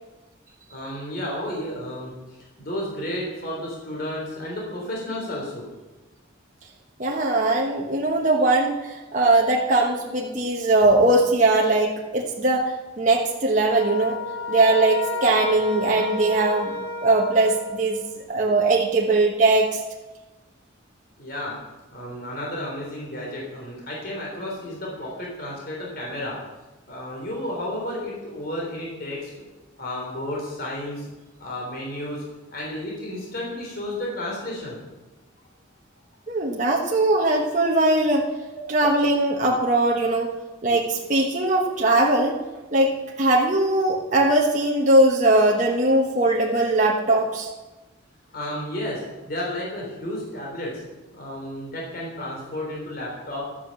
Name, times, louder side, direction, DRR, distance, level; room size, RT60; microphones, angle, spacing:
voice 1, 0.7-5.6 21.2-21.6 21.9-26.4 26.9-29.5 29.8-31.1 31.4-32.2 32.5-34.8 38.4-38.6 48.3-50.8 51.1-53.4, left 1 dB, 50° left, -3 dB, 3.5 m, -32 dB
voice 2, 7.0-14.2 14.5-19.8 36.3-38.3 38.7-40.3 40.6-42.4 42.7-47.5, right 2 dB, 40° right, -1 dB, 1.2 m, -20 dB
sound 1, 13.7-18.1, left 2 dB, 70° left, 2.2 m, -32 dB
12.5 x 8.1 x 7.1 m, 1.1 s
head